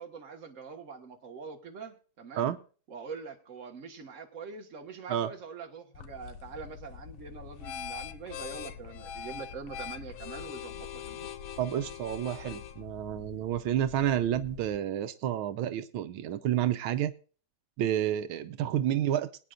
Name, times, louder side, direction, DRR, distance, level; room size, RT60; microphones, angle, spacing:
voice 1, 0.0-2.5 2.9-11.3, right 5 dB, 40° right, 3 dB, 1.8 m, -44 dB
sound 1, 5.9-14.8, left 9 dB, 85° left, 1.6 m, -43 dB
voice 2, 11.6-17.1 17.8-19.3, right 11 dB, 85° right, 10 dB, 1.6 m, -30 dB
22.5 x 9.4 x 2.5 m, 0.39 s
omnidirectional pair, 2.2 m